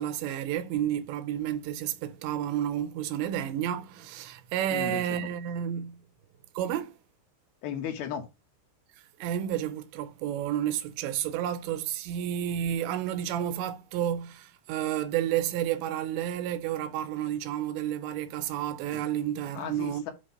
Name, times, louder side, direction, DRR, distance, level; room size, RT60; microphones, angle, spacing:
voice 1, 0.0-6.0 6.6-7.0 9.2-20.0, right 11 dB, 85° right, 3.0 m, -31 dB
voice 2, 4.7-5.3 7.6-8.2 19.5-20.1, left 8 dB, 70° left, 2.6 m, -35 dB
8.2 x 2.9 x 5.5 m
omnidirectional pair, 5.2 m